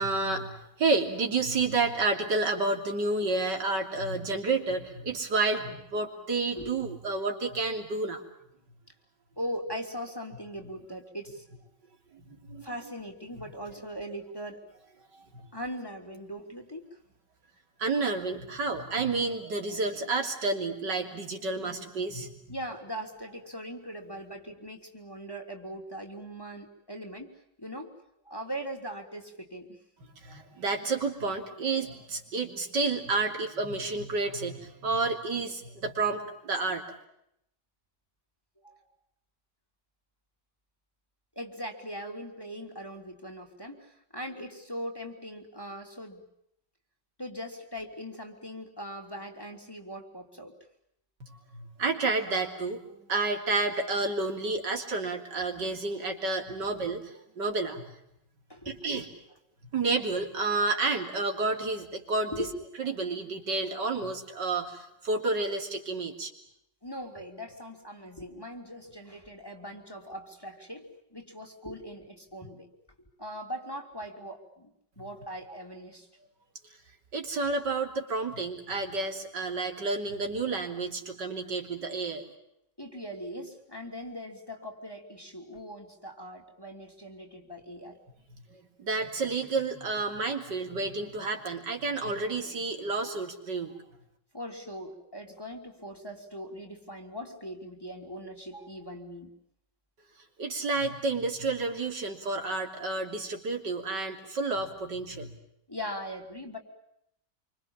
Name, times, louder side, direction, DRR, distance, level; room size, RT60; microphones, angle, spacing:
voice 1, 0.0-8.2 12.1-12.2 12.5-12.7 17.8-22.3 30.2-36.8 51.3-52.8 53.1-57.8 58.7-59.1 59.7-62.4 62.8-66.3 77.1-82.2 88.8-93.8 100.4-105.3, right 3 dB, 80° right, 3 dB, 3.8 m, -30 dB
voice 2, 9.4-11.4 12.6-14.6 15.5-17.0 22.5-27.9 28.2-29.8 38.6-38.8 41.3-46.2 47.2-50.5 56.6-56.7 58.5-58.8 62.3-62.6 66.8-72.7 73.2-76.1 82.8-88.0 94.3-99.3 105.7-106.6, equal, 15° left, 4 dB, 3.3 m, -40 dB
27.5 x 25.0 x 7.3 m, 0.76 s
omnidirectional pair, 1.8 m